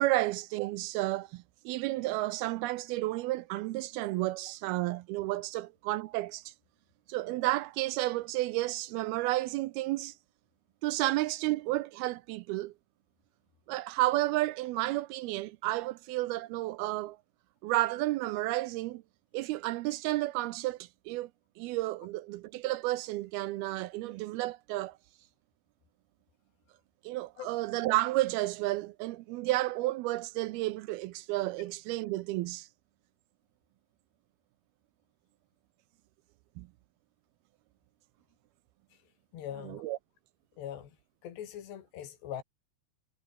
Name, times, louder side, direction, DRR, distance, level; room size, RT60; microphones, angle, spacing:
voice 1, 0.0-6.5 7.1-10.1 10.8-12.7 13.7-17.2 17.6-19.0 19.3-21.3 21.6-25.0 27.0-32.7 36.6-36.7 39.6-40.0, right 18 dB, 80° right, 2.4 m, -31 dB
voice 2, 39.3-39.9 40.6-41.0 41.2-42.4, left 10 dB, 90° left, 4.6 m, -41 dB
omnidirectional pair, 4.7 m